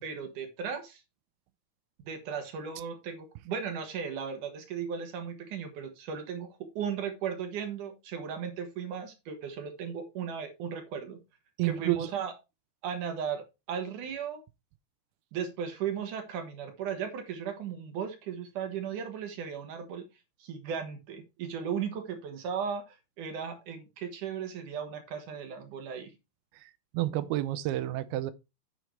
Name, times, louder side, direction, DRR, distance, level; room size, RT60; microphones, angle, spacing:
voice 1, 0.0-1.0 2.0-11.2 11.6-12.3 12.8-14.4 15.3-20.0 20.4-26.1, right 7 dB, 60° right, 2.7 m, -36 dB
voice 2, 11.6-12.0 26.6-28.3, right 15 dB, 80° right, 2.5 m, -30 dB
8.9 x 7.8 x 3.2 m
omnidirectional pair, 4.5 m